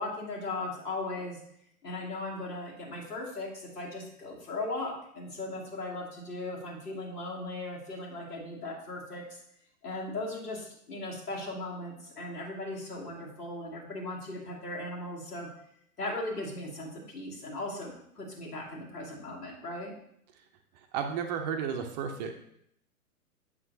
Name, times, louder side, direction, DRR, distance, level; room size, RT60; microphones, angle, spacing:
voice 1, 0.0-1.4 1.8-9.4 9.8-15.5 16.0-19.9, left 2 dB, 90° left, -3 dB, 2.3 m, -38 dB
voice 2, 20.9-22.3, right 7 dB, 30° right, 4 dB, 0.6 m, -32 dB
7.3 x 5.8 x 2.7 m, 0.72 s
hypercardioid pair, 125°, 45 cm